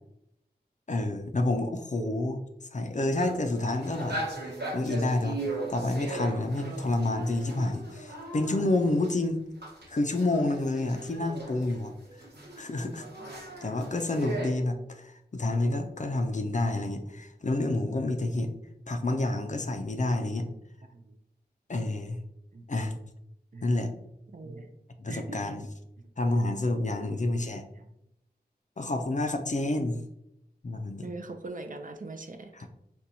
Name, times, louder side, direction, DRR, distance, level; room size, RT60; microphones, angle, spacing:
voice 1, 0.9-2.4 2.7-4.2 4.7-5.4 5.7-9.4 9.9-11.9 12.6-13.1 13.3-18.5 18.9-20.5 21.7-22.2 22.7-23.0 23.6-23.9 25.0-25.7 26.2-27.6 28.8-30.0 30.6-31.1 32.5-32.7, left 2 dB, 45° left, 6 dB, 0.4 m, -29 dB
sound 1, 3.1-9.1 9.6-14.5, right 2 dB, 75° right, 1.1 m, -38 dB
voice 2, 24.3-24.7 25.1-25.4 27.1-27.3 31.0-32.5, right 2 dB, 50° right, 5 dB, 0.4 m, -41 dB
4.2 x 2.3 x 2.6 m, 0.83 s
wide cardioid pair, 50°, 17 cm